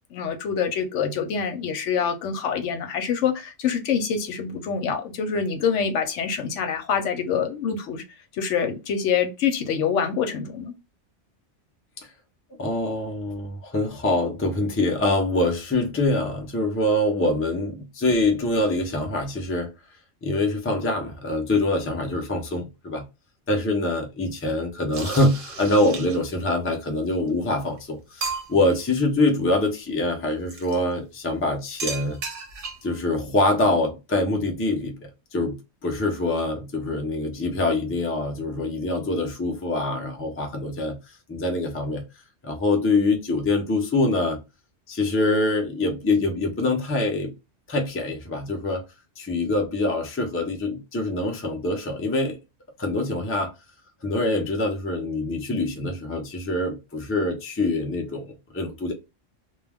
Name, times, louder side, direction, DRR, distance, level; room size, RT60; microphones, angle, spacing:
voice 1, 0.1-8.0 8.3-10.7, left 7 dB, 85° left, 0.9 m, -25 dB
voice 2, 12.6-19.7 20.2-23.0 23.5-32.2 32.8-41.0 41.3-42.0 42.4-44.4 44.9-47.3 47.7-48.8 49.2-52.4 52.8-53.5 54.0-58.9, left 2 dB, 20° left, 0.4 m, -24 dB
sound 1, 24.9-26.4 27.3-27.4 27.8-27.9 28.2-28.8 30.5-30.8 31.8-33.0, right 4 dB, 55° right, 0.8 m, -34 dB
2.3 x 2.2 x 3.3 m
omnidirectional pair, 1.2 m